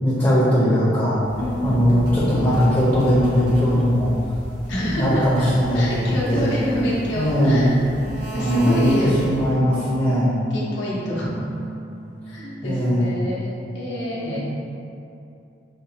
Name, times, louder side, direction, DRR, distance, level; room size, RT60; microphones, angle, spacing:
voice 1, 0.0-1.2 1.6-4.1 4.7-6.5 7.1-7.7 8.3-10.4 11.1-11.3 12.6-13.1 14.2-14.4, equal, 15° left, -9 dB, 0.5 m, -19 dB
sound 1, 1.2-9.6, right 1 dB, 80° right, 0.9 m, -34 dB
voice 2, 1.3-2.1 4.7-5.5 5.7-9.2 10.5-11.3 12.3-14.4, equal, 85° left, -6 dB, 0.7 m, -28 dB
sound 2, 8.4-13.2, right 3 dB, 45° right, 0.7 m, -38 dB
4.2 x 2.1 x 2.7 m, 2.7 s
head